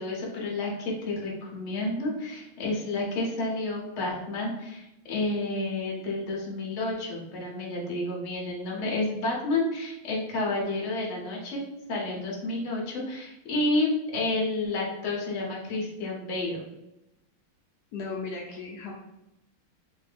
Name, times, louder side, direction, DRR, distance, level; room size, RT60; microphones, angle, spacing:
voice 1, 0.0-11.6 11.9-16.6, left 2 dB, 60° left, -2 dB, 0.7 m, -30 dB
voice 2, 17.9-18.9, left 4 dB, 90° left, -2 dB, 0.8 m, -36 dB
3.0 x 2.6 x 3.3 m, 0.89 s
omnidirectional pair, 2.3 m